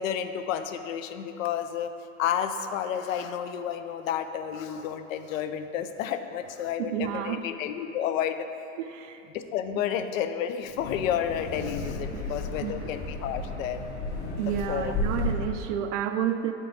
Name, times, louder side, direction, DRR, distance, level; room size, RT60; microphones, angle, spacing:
voice 1, 0.0-1.9 2.2-8.5 9.3-13.9 14.7-14.9, left 9 dB, 75° left, 9 dB, 0.6 m, -31 dB
voice 2, 6.8-7.4 8.8-9.2 12.1-12.3 12.6-12.8 14.4-16.5, right 9 dB, 65° right, 7 dB, 0.5 m, -30 dB
Wind, 10.6-15.7, left 2 dB, 25° left, 0.7 m, -33 dB
9.0 x 3.7 x 3.9 m, 2.8 s
supercardioid pair, 135°, 40 cm